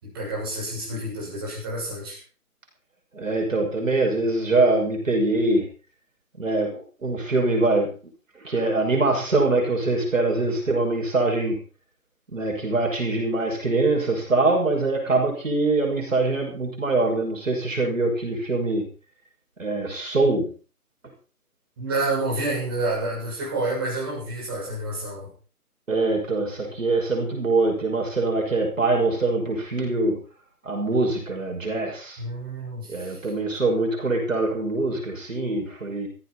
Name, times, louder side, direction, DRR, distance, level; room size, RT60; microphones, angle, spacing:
voice 1, 0.0-2.2 21.8-25.3 32.2-33.2, right 2 dB, 15° right, -5 dB, 6.7 m, -29 dB
voice 2, 3.1-5.7 6.4-7.9 8.3-11.6 12.3-18.9 19.6-20.5 25.9-30.2 30.6-32.2 32.9-36.1, right 2 dB, 55° right, 2 dB, 6.1 m, -23 dB
16.0 x 15.0 x 4.2 m, 0.38 s
figure-of-eight pair, 175°, 46 cm